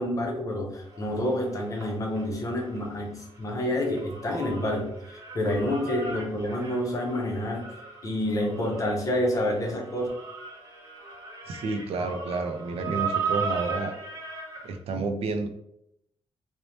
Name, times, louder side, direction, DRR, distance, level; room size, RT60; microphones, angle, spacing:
voice 1, 0.0-7.7 8.0-10.1, left 1 dB, 35° left, 0 dB, 0.6 m, -28 dB
sound 1, 0.9-2.9 3.2-14.8, right 4 dB, 30° right, 0.6 m, -36 dB
voice 2, 11.5-13.9 14.6-15.5, right 3 dB, 75° right, 6 dB, 0.4 m, -30 dB
3.1 x 2.0 x 2.6 m, 0.77 s
wide cardioid pair, 175°, 10 cm